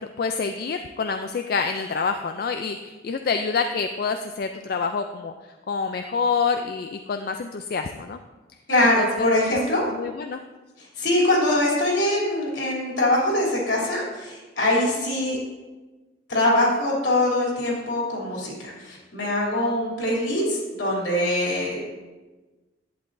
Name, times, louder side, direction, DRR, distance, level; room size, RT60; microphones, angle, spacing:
voice 1, 0.0-5.3 5.7-8.2 9.0-9.6 9.9-10.4, left 5 dB, 55° left, 6 dB, 0.4 m, -27 dB
voice 2, 8.7-9.8 11.0-15.4 16.3-21.9, left 1 dB, 75° left, -4 dB, 3.1 m, -23 dB
11.0 x 8.8 x 2.6 m, 1.2 s
head